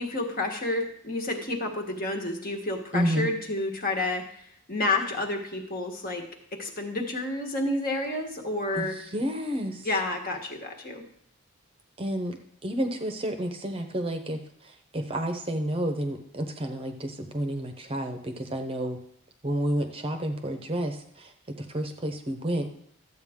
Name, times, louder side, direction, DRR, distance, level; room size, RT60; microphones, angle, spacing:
voice 1, 0.0-4.3 4.7-6.2 6.5-8.9 9.8-11.0, left 2 dB, 40° left, 3 dB, 1.5 m, -30 dB
voice 2, 2.9-3.3 8.7-9.9 12.0-12.4 12.6-19.0 19.4-22.7, right 1 dB, 25° right, 5 dB, 0.8 m, -30 dB
12.5 x 8.0 x 3.7 m, 0.67 s
head